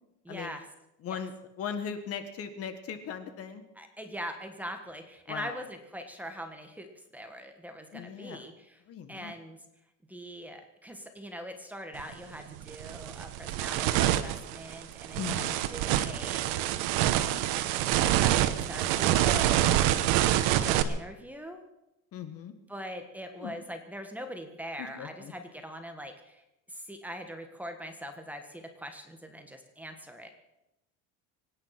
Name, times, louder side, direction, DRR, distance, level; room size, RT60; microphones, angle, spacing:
voice 1, 0.2-0.7 1.1-1.2 3.7-8.8 9.1-9.6 10.1-17.7 18.2-19.8 20.2-21.6 22.7-30.3, equal, 5° right, 5 dB, 1.5 m, -42 dB
voice 2, 1.6-3.6 5.3-5.6 7.9-8.5 8.9-9.3 15.2-15.6 22.1-22.5 23.4-23.5 24.8-25.3, left 7 dB, 45° left, 9 dB, 1.7 m, -38 dB
sound 1, 12.0-12.1 12.6-20.8, right 13 dB, 75° right, 1.3 m, -26 dB
24.5 x 9.9 x 5.9 m, 0.90 s
cardioid pair, 150°, 34 cm